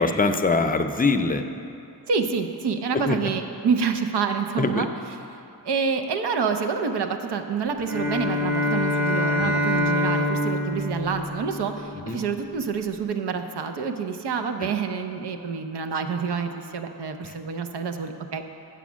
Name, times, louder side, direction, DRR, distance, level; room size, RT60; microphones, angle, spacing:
voice 1, 0.0-1.4 2.9-3.2 4.6-4.9 9.4-9.5 12.1-12.2 14.6-14.7, left 3 dB, 20° left, 7 dB, 0.5 m, -23 dB
voice 2, 2.1-4.9 5.6-18.5, right 5 dB, 80° right, 6 dB, 0.8 m, -27 dB
Bowed string instrument, 7.8-12.2, left 1 dB, 40° right, 2.0 m, -25 dB
8.2 x 7.1 x 6.2 m, 2.8 s
cardioid pair, 75°, 40 cm